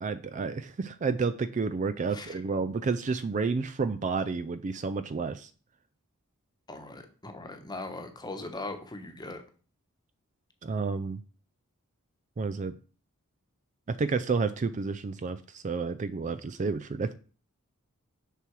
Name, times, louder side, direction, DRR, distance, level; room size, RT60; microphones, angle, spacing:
voice 1, 0.0-5.5 10.6-11.2 12.4-12.7 14.0-17.1, right 4 dB, 35° right, 12 dB, 0.4 m, -30 dB
voice 2, 6.7-9.4, left 2 dB, 20° left, 6 dB, 1.1 m, -40 dB
6.7 x 6.0 x 4.7 m, 0.39 s
head